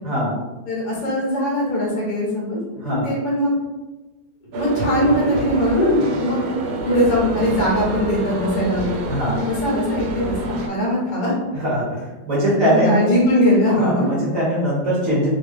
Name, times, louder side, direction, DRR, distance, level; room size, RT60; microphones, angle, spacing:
voice 1, 0.0-0.4 2.8-3.1 9.1-9.5 11.5-13.0 13.8-15.3, equal, 55° right, -7 dB, 1.1 m, -21 dB
voice 2, 0.7-3.5 4.5-9.0 9.5-11.3 12.6-14.1, equal, 35° left, -5 dB, 0.8 m, -21 dB
sound 1, 4.5-10.7, right 2 dB, 80° right, 1.3 m, -27 dB
3.0 x 2.3 x 3.3 m, 1.1 s
omnidirectional pair, 2.0 m